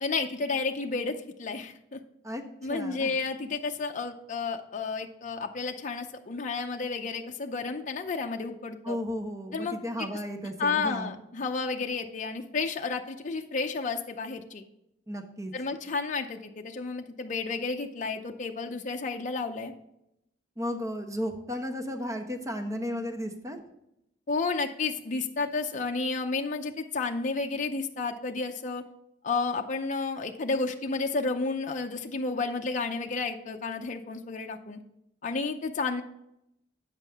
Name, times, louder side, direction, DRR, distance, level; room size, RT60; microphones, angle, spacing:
voice 1, 0.0-2.0 2.6-9.0 9.5-9.8 10.6-14.6 15.5-19.7 24.3-28.8 29.2-34.8 35.2-36.0, left 4 dB, 45° left, 3 dB, 0.6 m, -31 dB
voice 2, 2.2-3.1 8.8-11.1 15.1-15.5 20.6-23.6, equal, 20° right, 5 dB, 1.0 m, -34 dB
9.0 x 7.3 x 3.5 m, 0.82 s
head